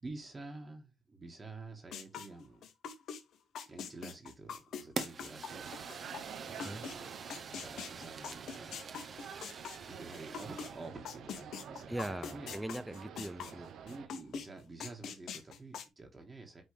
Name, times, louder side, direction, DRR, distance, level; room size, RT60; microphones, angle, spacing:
voice 1, 0.0-2.7 3.6-5.7 6.4-8.9 9.8-12.6 13.8-16.6, right 3 dB, 25° right, 1.7 m, -49 dB
sound 1, 1.9-3.2 3.5-7.0 7.3-10.7 11.0-13.6 13.9-14.5 14.8-15.9, left 7 dB, 75° left, 1.0 m, -43 dB
Fire, 5.0-10.9, right 5 dB, 45° right, 1.0 m, -46 dB
sound 2, 5.5-14.1, right 8 dB, 75° right, 0.8 m, -49 dB
voice 2, 11.9-13.7, right 1 dB, 5° right, 0.4 m, -40 dB
8.6 x 3.6 x 3.3 m
cardioid pair, 90°, 0 cm